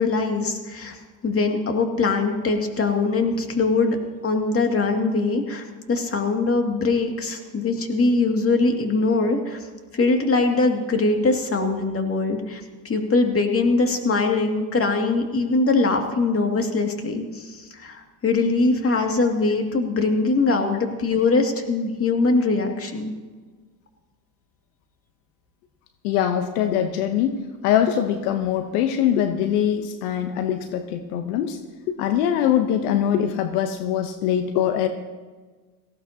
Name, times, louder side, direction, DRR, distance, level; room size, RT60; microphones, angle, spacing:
voice 1, 0.0-4.0 4.2-9.7 9.9-23.1, left 3 dB, 30° left, 3 dB, 2.4 m, -22 dB
voice 2, 26.0-31.6 31.9-34.9, left 9 dB, 80° left, 8 dB, 1.0 m, -23 dB
18.5 x 16.0 x 2.9 m, 1.4 s
hypercardioid pair, 80°, 45 cm